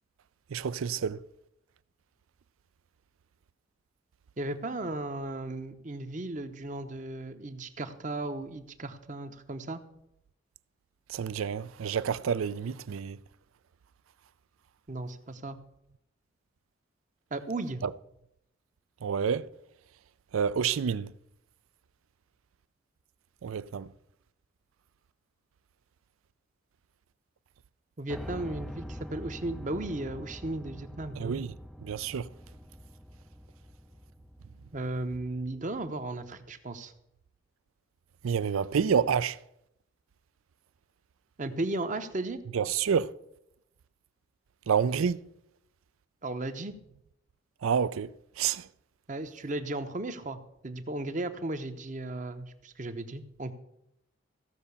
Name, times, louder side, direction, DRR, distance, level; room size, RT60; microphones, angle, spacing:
voice 1, 0.5-1.2 11.1-13.2 17.8-17.9 19.0-19.5 20.3-21.1 23.4-23.9 31.2-31.5 31.8-32.3 38.2-39.4 42.5-43.1 44.7-45.2 47.6-48.1 48.4-48.7, right 7 dB, 85° right, 0.4 m, -28 dB
voice 2, 4.4-9.8 14.9-15.6 17.3-17.8 28.0-31.4 34.7-36.9 41.4-42.4 46.2-46.7 49.1-50.4 50.6-53.5, right 2 dB, 40° right, 0.8 m, -35 dB
Piano, 28.1-36.1, equal, ahead, 0.4 m, -45 dB
15.0 x 5.7 x 6.9 m
head